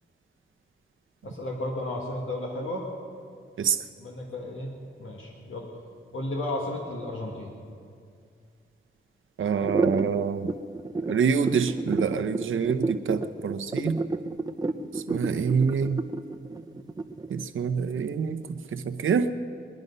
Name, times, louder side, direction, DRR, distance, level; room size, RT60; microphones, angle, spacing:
voice 1, 1.2-2.9 4.0-4.7 5.0-5.7 6.1-7.5, left 1 dB, 90° left, -1 dB, 1.9 m, -33 dB
voice 2, 9.4-10.5 11.1-14.0 14.9-16.0 17.3-19.3, right 6 dB, 85° right, 9 dB, 0.8 m, -26 dB
sound 1, 9.6-17.4, right 3 dB, 20° right, 0.6 m, -30 dB
23.0 x 10.5 x 5.5 m, 2.2 s
wide cardioid pair, 110°, 20 cm